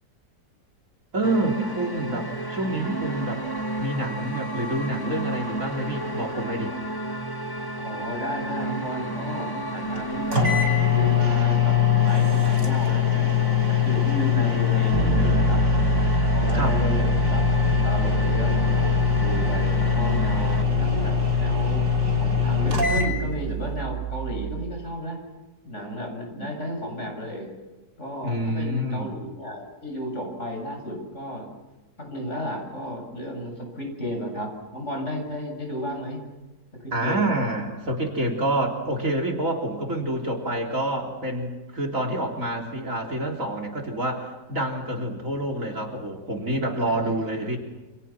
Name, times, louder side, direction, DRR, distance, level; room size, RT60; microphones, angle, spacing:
voice 1, 1.1-3.4 3.8-6.7 16.5-16.8 26.4-26.5 28.2-29.1 36.9-47.6, right 1 dB, 45° right, 5 dB, 4.0 m, -27 dB
sound 1, 1.2-20.6, right 2 dB, 15° left, 1.8 m, -32 dB
voice 2, 7.8-10.4 10.9-15.6 16.3-21.9 22.2-25.2 25.6-27.5 28.0-31.5 32.0-36.2 36.8-37.3 46.9-47.1, equal, 40° left, 2 dB, 8.4 m, -33 dB
sound 2, 10.0-10.1 10.3-23.1, left 10 dB, 80° right, 6.5 m, -22 dB
Bass guitar, 14.9-24.8, right 10 dB, 75° left, 5.9 m, -27 dB
29.5 x 28.0 x 6.1 m, 1.1 s
omnidirectional pair, 1.9 m